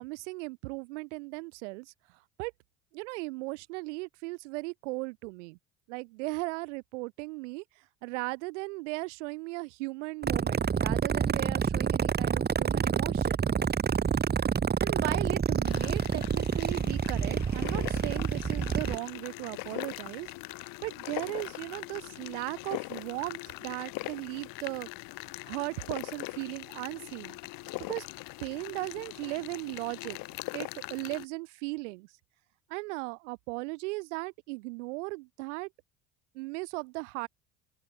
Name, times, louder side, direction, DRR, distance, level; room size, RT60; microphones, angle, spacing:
voice 1, 0.0-1.9 2.4-2.5 2.9-5.6 5.9-7.6 8.0-13.4 14.8-20.3 20.8-24.9 25.5-27.4 27.9-28.1 28.4-30.2 30.5-32.1 32.7-35.7 36.3-37.3, right 26 dB, 75° right, 4.4 m, -37 dB
sound 1, 10.2-19.0, right 6 dB, 25° right, 1.8 m, -28 dB
sound 2, 15.6-31.3, left 23 dB, 65° left, 6.8 m, -41 dB
open air
hypercardioid pair, 70°, 36 cm